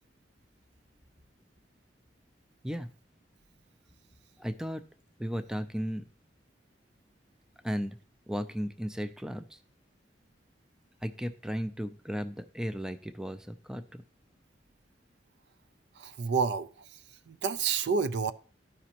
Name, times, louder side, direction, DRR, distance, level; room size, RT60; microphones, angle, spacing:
voice 1, 4.4-4.8 5.2-6.1 7.6-8.0 8.3-9.6 11.0-14.0, equal, 5° right, 0.3 m, -35 dB
voice 2, 16.0-17.0 17.3-18.3, right 5 dB, 70° right, 0.4 m, -29 dB
13.0 x 5.1 x 2.9 m
head